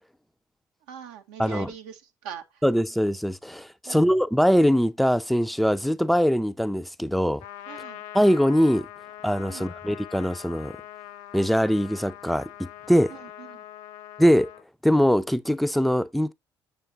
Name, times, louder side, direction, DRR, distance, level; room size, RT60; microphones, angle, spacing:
voice 1, 0.9-2.6 3.8-4.1 7.7-8.0 9.5-9.7 13.1-13.6, right 8 dB, 75° right, 0.7 m, -42 dB
voice 2, 1.4-1.7 2.6-7.4 8.1-8.9 9.2-10.8 11.3-13.1 14.2-14.5 14.8-16.3, equal, ahead, 0.4 m, -22 dB
Trumpet, 7.4-14.6, left 12 dB, 65° left, 0.4 m, -43 dB
7.0 x 6.8 x 2.6 m
hypercardioid pair, 50°, 12 cm